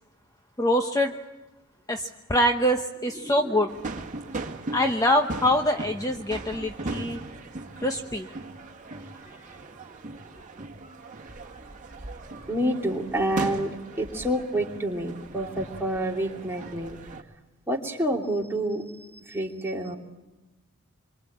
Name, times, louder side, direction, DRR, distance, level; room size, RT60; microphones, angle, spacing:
voice 1, 0.6-1.2 1.9-3.7 4.7-7.2 7.8-8.3, left 1 dB, 15° left, 5 dB, 1.0 m, -24 dB
voice 2, 3.1-3.7 9.2-9.7 12.5-13.7 14.0-17.0 17.7-20.0, right 1 dB, 10° right, -1 dB, 2.9 m, -29 dB
sound 1, 3.7-17.2, right 2 dB, 35° right, 1.9 m, -38 dB
27.0 x 24.0 x 8.7 m, 1.1 s
head